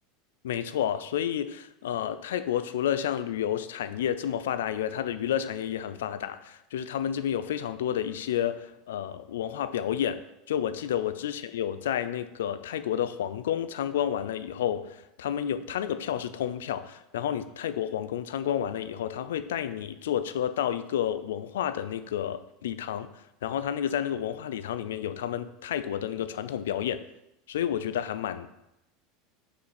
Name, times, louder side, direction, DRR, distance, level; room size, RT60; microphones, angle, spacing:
voice 1, 0.4-23.1 23.4-27.0 27.5-28.5, left 10 dB, 75° left, 13 dB, 0.4 m, -30 dB
5.7 x 4.8 x 4.2 m, 0.88 s
hypercardioid pair, 80°, 0 cm